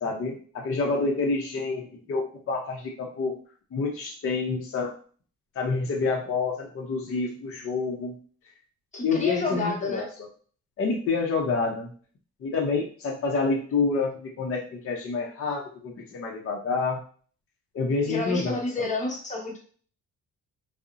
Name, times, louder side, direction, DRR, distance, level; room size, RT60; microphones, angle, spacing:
voice 1, 0.0-3.3 3.7-4.9 5.6-8.1 9.0-10.0 10.8-11.9 12.4-17.0 17.7-18.9, left 4 dB, 45° left, 0 dB, 0.6 m, -28 dB
voice 2, 8.9-10.1 18.1-19.6, left 3 dB, 25° left, 0 dB, 0.9 m, -30 dB
2.6 x 2.0 x 2.4 m, 0.43 s
cardioid pair, 90°, 30 cm